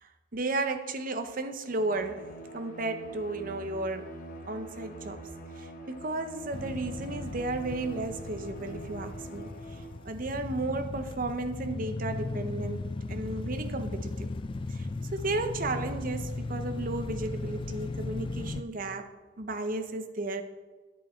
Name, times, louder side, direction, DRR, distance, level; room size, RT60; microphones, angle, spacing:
voice 1, 0.0-4.2 4.5-5.3 5.6-9.5 10.0-14.3 14.7-19.1 19.4-20.4, right 2 dB, 45° right, 8 dB, 0.7 m, -34 dB
Bowed string instrument, 1.6-10.2, right 1 dB, 45° left, 1.1 m, -44 dB
sound 1, 6.5-18.6, left 3 dB, 25° left, 0.3 m, -37 dB
10.0 x 8.7 x 4.3 m, 1.3 s
head